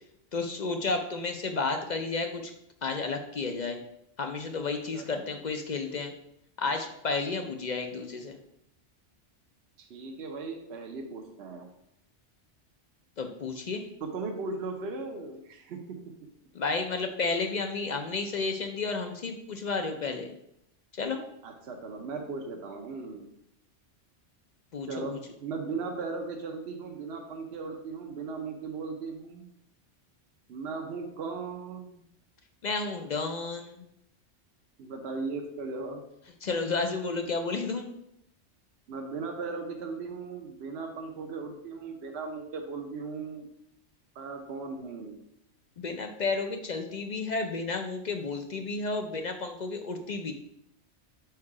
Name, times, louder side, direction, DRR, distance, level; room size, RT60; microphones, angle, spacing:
voice 1, 0.3-2.5 2.8-3.8 4.2-6.1 6.6-8.4 13.2-13.8 16.5-20.3 20.9-21.2 24.7-25.2 32.6-33.8 36.4-37.9 45.8-50.3, left 4 dB, 50° left, 6 dB, 0.5 m, -32 dB
voice 2, 4.9-5.4 9.8-11.7 14.0-16.0 21.4-23.3 24.9-25.2 25.4-29.4 30.5-32.0 34.8-36.0 38.9-43.5 44.1-45.2, right 4 dB, 65° right, 3 dB, 1.0 m, -37 dB
4.7 x 4.6 x 4.8 m, 0.76 s
omnidirectional pair, 1.2 m